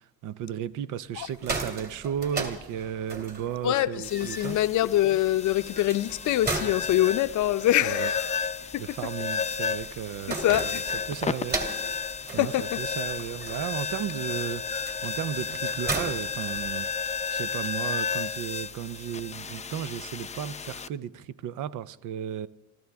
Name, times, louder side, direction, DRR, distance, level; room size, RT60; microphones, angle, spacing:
voice 1, 0.0-4.6 7.8-8.1 8.8-10.8 11.1-16.9 17.3-22.5, right 10 dB, 85° right, 0.7 m, -34 dB
sound 1, 1.2-17.1, right 3 dB, 30° right, 2.7 m, -38 dB
voice 2, 3.6-8.4 8.7-8.8 10.4-10.8 12.4-12.7, left 13 dB, 75° left, 0.6 m, -24 dB
sound 2, 4.0-20.9, left 5 dB, 25° left, 0.5 m, -33 dB
27.0 x 14.0 x 3.5 m
cardioid pair, 90°, 30 cm